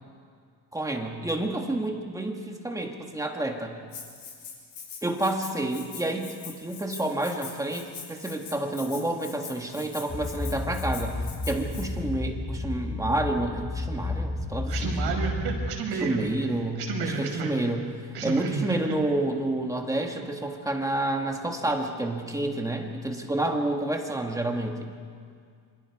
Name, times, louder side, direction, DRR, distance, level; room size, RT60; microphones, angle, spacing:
voice 1, 0.7-3.7 5.0-14.9 16.0-17.9 18.2-24.9, right 1 dB, 10° right, 2 dB, 1.7 m, -29 dB
Rattle (instrument), 3.9-11.9, left 6 dB, 55° left, 6.1 m, -43 dB
sound 1, 10.1-15.7, left 2 dB, 15° left, 0.8 m, -31 dB
voice 2, 14.7-16.3 16.5-17.6 18.1-19.0, right 5 dB, 80° right, 1 dB, 6.0 m, -31 dB
27.5 x 27.0 x 4.8 m, 2.1 s
cardioid pair, 165°, 39 cm